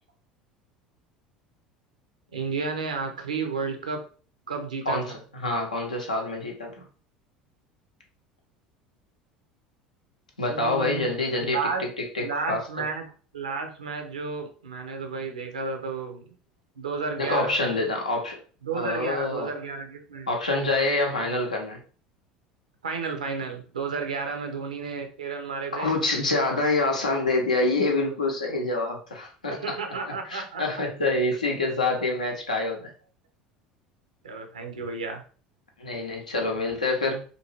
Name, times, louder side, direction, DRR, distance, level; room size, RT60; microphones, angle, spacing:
voice 1, 2.3-4.0 4.5-5.2 10.5-11.0 11.4-11.9 12.2-13.0 13.3-16.3 16.8-17.6 18.6-20.3 22.8-25.9 29.5-30.6 34.2-35.2, right 4 dB, 75° right, 4 dB, 0.5 m, -32 dB
voice 2, 4.9-6.8 10.4-12.7 17.2-18.4 18.7-19.5 20.3-21.8 25.7-29.8 30.3-32.9 35.8-37.2, left 2 dB, 80° left, 1 dB, 0.6 m, -26 dB
2.6 x 2.4 x 3.0 m, 0.40 s
figure-of-eight pair, 70°, 4 cm